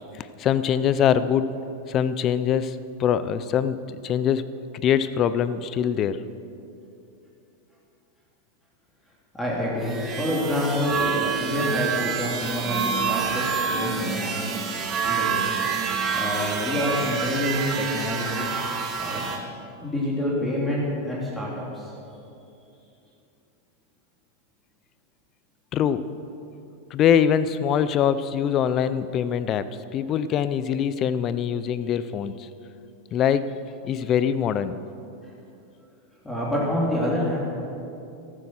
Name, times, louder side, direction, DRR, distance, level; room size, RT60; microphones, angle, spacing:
voice 1, 0.4-1.5 1.9-6.2 25.7-26.1 26.9-32.5 33.1-33.5 33.8-34.8, left 8 dB, 35° left, 14 dB, 0.6 m, -23 dB
voice 2, 9.3-14.7 15.1-15.5 16.1-18.5 19.0-19.3 19.8-21.8 36.2-37.4, left 1 dB, 10° left, -5 dB, 3.1 m, -27 dB
sound 1, 9.8-19.4, right 6 dB, 25° right, 2.0 m, -27 dB
14.0 x 12.5 x 6.2 m, 2.7 s
supercardioid pair, 125°, 0 cm